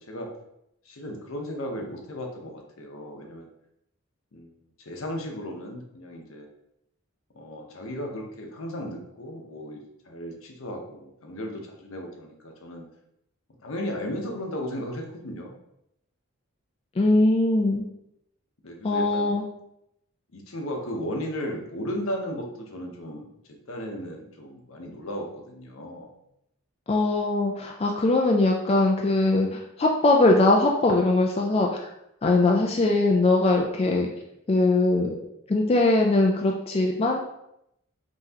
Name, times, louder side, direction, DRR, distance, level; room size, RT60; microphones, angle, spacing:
voice 1, 0.8-3.5 4.3-4.5 4.8-6.5 7.3-12.8 13.6-15.6 18.6-19.3 20.3-26.2 32.6-33.0, equal, 75° left, 2 dB, 0.9 m, -35 dB
voice 2, 17.0-17.8 18.8-19.4 26.9-31.9 32.2-34.1 34.5-35.2 35.5-37.2, left 2 dB, 30° left, 1 dB, 0.3 m, -21 dB
5.7 x 3.0 x 2.8 m, 0.80 s
head